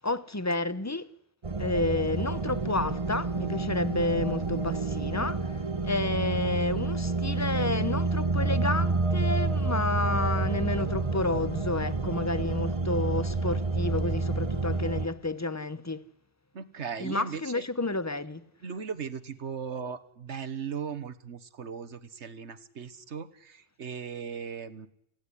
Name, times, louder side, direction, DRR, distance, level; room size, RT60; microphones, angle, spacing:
voice 1, 0.0-1.1 1.6-16.0 17.0-18.4, left 2 dB, 15° left, 0.8 m, -30 dB
sound 1, 1.4-15.1, right 3 dB, 30° right, 1.2 m, -29 dB
voice 2, 16.5-17.6 18.6-24.9, right 6 dB, 70° right, 1.6 m, -38 dB
28.5 x 16.5 x 10.0 m
omnidirectional pair, 1.2 m